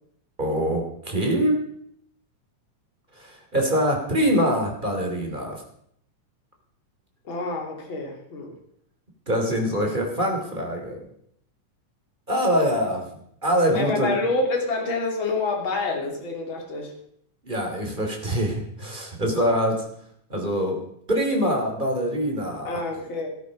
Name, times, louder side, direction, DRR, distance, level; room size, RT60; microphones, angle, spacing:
voice 1, 0.4-1.6 3.2-5.6 9.3-11.0 12.3-13.0 13.4-14.2 17.4-19.8 20.3-22.9, equal, 15° right, 1 dB, 2.9 m, -24 dB
voice 2, 7.2-8.5 13.7-16.9 22.6-23.3, left 3 dB, 40° left, 1 dB, 3.4 m, -27 dB
15.0 x 13.5 x 5.2 m, 0.69 s
omnidirectional pair, 3.7 m